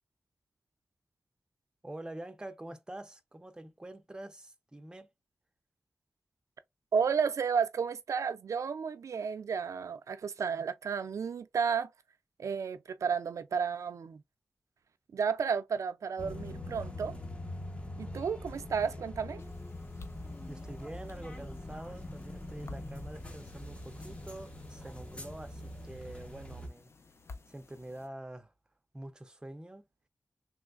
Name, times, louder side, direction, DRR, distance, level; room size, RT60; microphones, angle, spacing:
voice 1, 1.8-5.1 20.5-26.9 27.5-28.5 28.9-29.9, right 1 dB, 15° right, 0.5 m, -46 dB
voice 2, 6.9-11.9 12.4-14.2 15.1-17.2 18.0-19.4, right 6 dB, 90° right, 0.3 m, -32 dB
sound 1, 16.2-26.7, left 1 dB, 20° left, 0.7 m, -43 dB
sound 2, 19.4-28.1, left 3 dB, 55° left, 0.5 m, -55 dB
3.1 x 3.0 x 2.4 m
wide cardioid pair, 95°, 5 cm